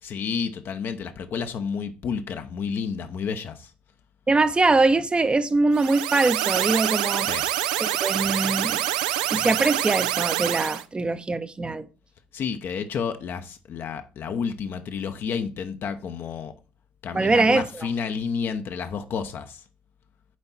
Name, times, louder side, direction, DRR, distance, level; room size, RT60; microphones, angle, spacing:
voice 1, 0.0-3.7 7.2-7.5 12.3-16.5 17.0-19.6, left 6 dB, 55° left, 0.8 m, -30 dB
voice 2, 4.3-7.3 7.8-8.8 9.3-11.9 17.1-17.7, right 3 dB, 25° right, 0.7 m, -22 dB
sound 1, 5.7-10.8, right 13 dB, 85° right, 0.4 m, -26 dB
7.5 x 4.4 x 4.2 m
hypercardioid pair, 55°, 4 cm